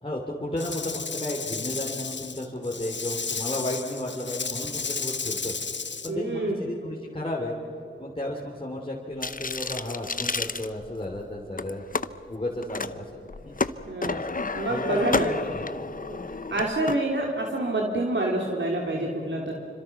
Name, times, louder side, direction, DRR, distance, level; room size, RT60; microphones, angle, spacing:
voice 1, 0.0-5.5 6.0-7.6 8.0-11.8 12.3-13.6 14.2-14.3 14.7-15.6, left 1 dB, 25° left, -3 dB, 3.2 m, -33 dB
Rattle / Rattle (instrument), 0.6-6.1, left 5 dB, 60° left, 1.1 m, -33 dB
voice 2, 6.1-6.6 13.9-14.2 14.5-15.3 16.1-16.2 16.5-19.5, right 2 dB, 65° right, -1 dB, 2.9 m, -27 dB
sound 1, 9.2-11.2 11.6-12.1 12.6-12.9 13.3-17.0, left 4 dB, 40° left, 0.8 m, -30 dB
27.5 x 25.5 x 6.0 m, 2.9 s
wide cardioid pair, 55°, 21 cm